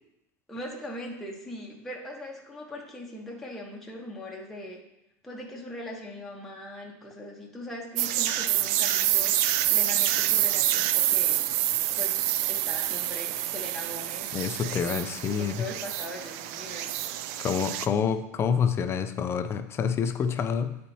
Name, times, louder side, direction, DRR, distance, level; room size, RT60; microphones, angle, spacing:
voice 1, 0.5-4.8 5.2-11.4 12.0-14.3 14.7-14.9 15.4-16.9, left 1 dB, 5° left, -3 dB, 1.1 m, -40 dB
sound 1, 8.0-17.9, right 13 dB, 65° right, 0.4 m, -27 dB
voice 2, 14.3-15.6 17.4-20.8, left 7 dB, 30° left, 8 dB, 0.5 m, -27 dB
9.8 x 4.3 x 2.8 m, 0.86 s
supercardioid pair, 130°, 9 cm